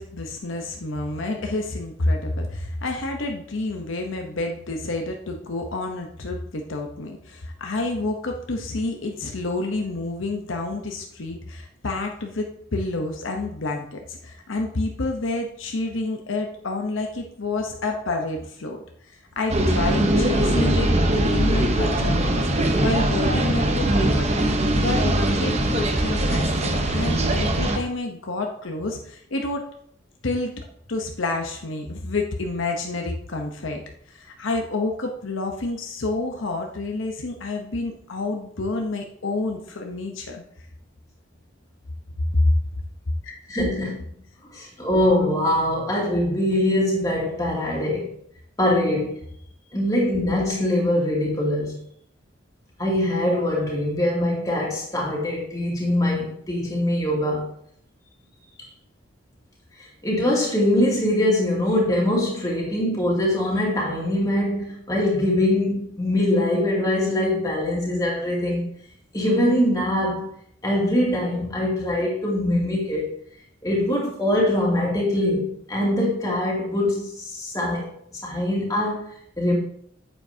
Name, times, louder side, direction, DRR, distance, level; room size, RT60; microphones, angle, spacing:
voice 1, 0.0-29.7 30.2-33.8 34.1-40.4 43.2-43.4, left 2 dB, 75° left, 2 dB, 0.9 m, -29 dB
sound 1, 19.5-27.8, right 1 dB, 30° right, 0.8 m, -21 dB
voice 2, 43.5-44.0 44.5-48.1 48.6-49.1 49.7-51.8 52.8-57.5 60.0-68.7 69.1-70.3 70.6-73.1 73.6-79.6, left 1 dB, 15° left, -4 dB, 2.5 m, -23 dB
9.1 x 7.8 x 2.8 m, 0.65 s
head